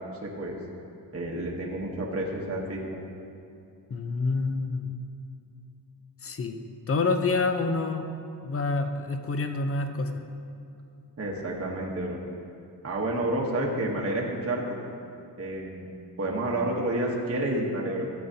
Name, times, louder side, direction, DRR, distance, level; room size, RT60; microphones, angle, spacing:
voice 1, 0.2-0.5 1.1-2.8 11.2-12.2 12.8-14.6 15.4-15.8 16.2-18.1, right 1 dB, 35° right, -2 dB, 1.1 m, -29 dB
voice 2, 3.9-4.9 6.2-6.6 6.9-8.1 8.4-10.2, left 3 dB, 30° left, 7 dB, 0.7 m, -27 dB
13.0 x 7.8 x 2.8 m, 2.5 s
cardioid pair, 90°, 43 cm